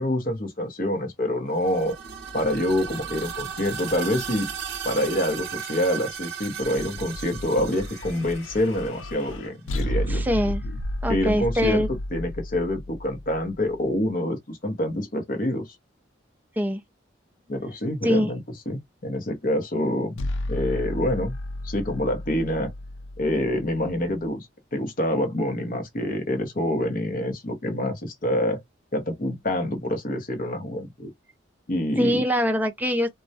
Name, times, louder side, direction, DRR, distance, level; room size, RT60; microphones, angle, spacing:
voice 1, 0.0-2.0 2.3-4.5 4.8-10.2 11.1-11.8 12.1-15.7 17.5-18.4 18.7-20.2 20.5-21.4 21.6-22.7 23.2-24.5 24.7-28.6 28.9-31.1 31.7-32.2, left 1 dB, 45° left, 0.7 m, -26 dB
sound 1, 1.5-9.3, right 8 dB, 55° right, 0.6 m, -36 dB
sound 2, 6.6-13.9 20.2-24.3, left 1 dB, 80° left, 0.4 m, -33 dB
voice 2, 10.1-10.6 11.0-11.9 16.6-16.8 18.0-18.3 32.0-33.1, equal, 10° right, 0.4 m, -23 dB
2.2 x 2.1 x 2.7 m
head